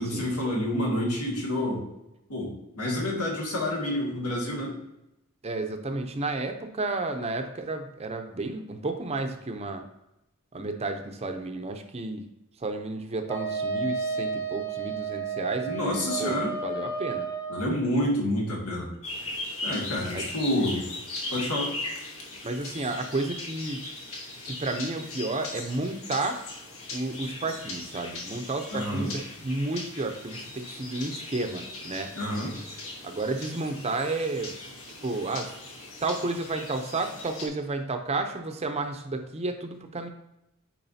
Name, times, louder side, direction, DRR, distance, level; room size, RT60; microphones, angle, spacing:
voice 1, 0.0-1.8 2.3-4.7 15.6-16.5 17.5-18.9 19.6-20.8 21.3-21.7 28.7-29.1 32.1-32.5, left 1 dB, 80° left, -2 dB, 2.0 m, -28 dB
voice 2, 5.4-9.8 10.5-12.2 12.6-17.3 20.1-20.3 22.4-23.9 24.4-26.4 26.9-32.1 33.0-34.6 35.0-35.5 36.0-40.1, right 2 dB, 30° right, 6 dB, 0.6 m, -32 dB
Wind instrument woodwind instrument, 13.3-17.7, right 5 dB, 10° left, 0.9 m, -32 dB
sound 1, 19.0-37.5, left 2 dB, 65° left, 1.3 m, -39 dB
8.9 x 4.7 x 2.7 m, 0.89 s
head